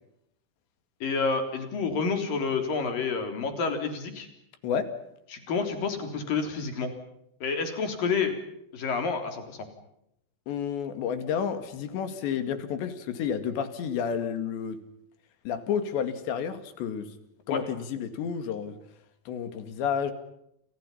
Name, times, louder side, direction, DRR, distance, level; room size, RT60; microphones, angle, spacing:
voice 1, 1.0-4.3 5.3-6.9 7.4-8.4 8.7-9.7 17.5-17.6, left 4 dB, 55° left, 6 dB, 5.2 m, -29 dB
voice 2, 10.5-14.8 15.5-17.1 17.5-18.8 19.3-20.1, left 7 dB, 85° left, 10 dB, 4.5 m, -30 dB
29.0 x 29.0 x 5.7 m, 0.78 s
omnidirectional pair, 4.9 m